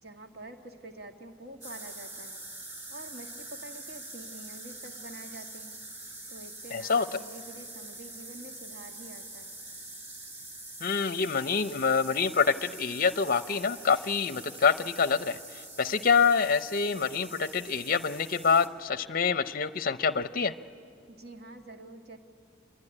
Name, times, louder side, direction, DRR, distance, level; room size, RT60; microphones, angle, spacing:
voice 1, 0.0-2.5 2.9-5.8 6.3-9.6 21.1-22.2, right 2 dB, 55° right, 4 dB, 1.8 m, -47 dB
sound 1, 1.6-18.7, right 2 dB, 35° right, 2.2 m, -45 dB
voice 2, 6.7-7.1 10.8-20.5, left 5 dB, 45° left, 13 dB, 0.6 m, -26 dB
26.5 x 22.0 x 9.9 m, 2.4 s
head